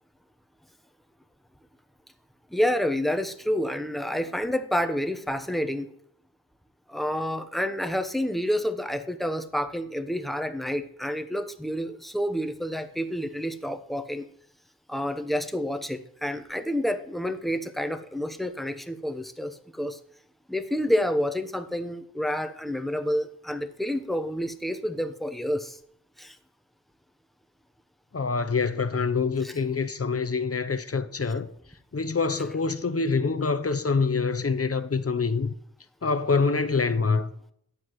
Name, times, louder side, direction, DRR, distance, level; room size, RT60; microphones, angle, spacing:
voice 1, 2.5-5.9 6.9-14.2 14.9-20.0 20.5-25.8 26.2-26.4 29.4-29.5, equal, ahead, 0.9 m, -29 dB
voice 2, 28.1-31.5 31.9-35.5 36.0-37.3, left 4 dB, 45° left, 0.8 m, -25 dB
13.0 x 9.5 x 3.1 m
wide cardioid pair, 50°, 34 cm